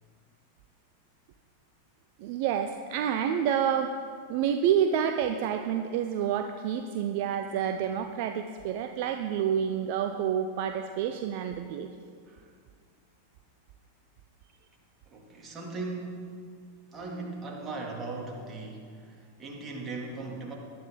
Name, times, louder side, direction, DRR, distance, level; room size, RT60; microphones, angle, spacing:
voice 1, 2.2-4.0 4.3-11.9, right 8 dB, 45° right, 7 dB, 0.7 m, -28 dB
voice 2, 15.1-16.4 16.9-20.5, right 3 dB, 20° right, -1 dB, 2.8 m, -38 dB
19.0 x 12.0 x 4.0 m, 2.1 s
figure-of-eight pair, 90°, 0 cm